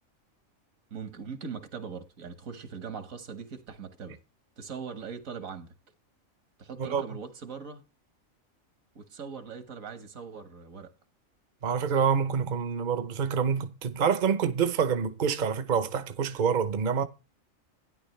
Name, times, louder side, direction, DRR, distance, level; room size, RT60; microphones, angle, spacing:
voice 1, 0.9-4.2 4.6-5.7 6.6-7.8 9.0-10.9, right 6 dB, 75° right, 1.9 m, -41 dB
voice 2, 11.6-17.0, right 6 dB, 40° right, 0.9 m, -27 dB
12.0 x 10.0 x 3.2 m
omnidirectional pair, 1.4 m